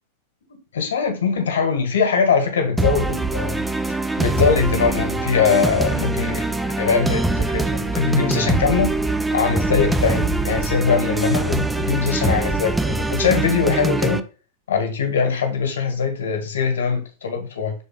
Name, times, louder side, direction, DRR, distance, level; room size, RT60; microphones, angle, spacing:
voice 1, 0.5-8.9 9.3-14.2 14.7-17.7, left 5 dB, 65° left, 5 dB, 1.7 m, -22 dB
sound 1, 2.8-14.2, right 2 dB, 5° right, 0.5 m, -23 dB
6.6 x 4.0 x 3.6 m, 0.34 s
figure-of-eight pair, 90°, 0 cm